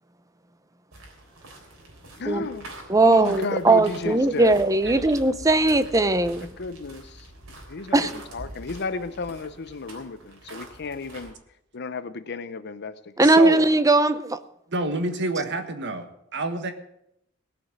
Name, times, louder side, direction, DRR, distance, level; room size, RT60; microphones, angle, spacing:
sound 1, 0.9-11.3, right 1 dB, 80° right, 3.5 m, -44 dB
voice 1, 2.2-2.7 3.0-4.5 6.2-7.3 7.7-11.3 11.7-13.1, left 4 dB, 55° left, 0.7 m, -33 dB
voice 2, 2.9-6.5 7.9-8.1 13.2-14.4, right 2 dB, 15° right, 0.6 m, -19 dB
voice 3, 13.2-13.6 14.7-16.1 16.3-16.7, right 2 dB, 60° right, 1.5 m, -27 dB
18.0 x 6.2 x 7.6 m
head